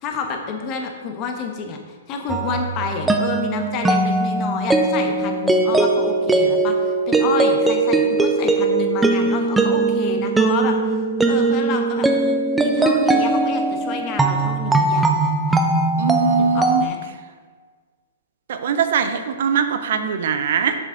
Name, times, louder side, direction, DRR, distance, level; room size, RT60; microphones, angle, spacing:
voice 1, 0.0-10.8 11.3-12.1 12.6-15.0 16.5-17.0, left 5 dB, 35° left, 3 dB, 1.1 m, -29 dB
sound 1, 2.3-16.8, right 3 dB, 10° right, 0.6 m, -19 dB
voice 2, 16.0-16.8 18.5-20.8, right 6 dB, 60° right, 8 dB, 0.6 m, -21 dB
7.2 x 7.1 x 3.9 m, 1.5 s
figure-of-eight pair, 115°, 0 cm